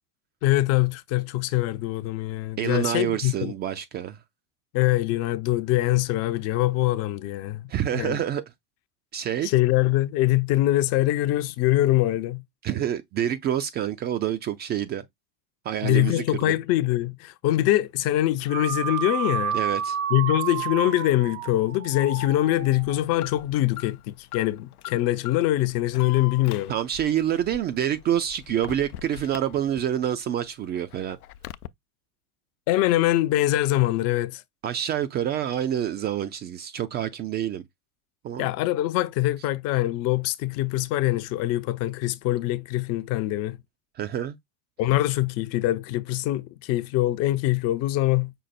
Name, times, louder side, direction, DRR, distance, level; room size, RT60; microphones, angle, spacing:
voice 1, 0.4-3.5 4.7-7.7 7.9-8.2 9.4-12.4 15.8-19.6 20.1-26.7 32.7-34.4 38.4-43.6 44.8-48.3, left 15 dB, 35° left, 0.5 m, -23 dB
voice 2, 2.6-4.2 7.7-8.4 9.1-9.5 12.6-15.0 15.6-16.2 19.5-20.0 26.7-31.2 34.6-37.6 38.2-38.5 44.0-44.4, right 10 dB, 25° right, 0.4 m, -27 dB
sound 1, 18.5-23.0, right 9 dB, 70° right, 1.0 m, -30 dB
Alarm, 21.9-30.1 30.4-31.7, left 13 dB, 80° left, 0.6 m, -41 dB
5.5 x 2.0 x 4.2 m
hypercardioid pair, 95°, 44 cm